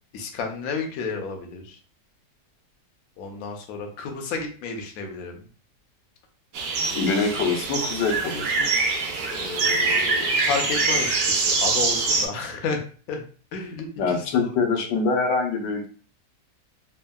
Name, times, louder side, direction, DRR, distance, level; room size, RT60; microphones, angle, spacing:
voice 1, 0.1-1.8 3.2-5.4 9.3-12.8 13.1-13.2 13.5-14.5, left 4 dB, 70° left, 3 dB, 0.9 m, -31 dB
sound 1, 6.5-12.3, right 3 dB, 85° right, 1.3 m, -24 dB
voice 2, 6.9-8.7 14.0-15.9, left 4 dB, 85° left, 2 dB, 1.3 m, -24 dB
3.4 x 2.0 x 2.2 m, 0.40 s
omnidirectional pair, 1.8 m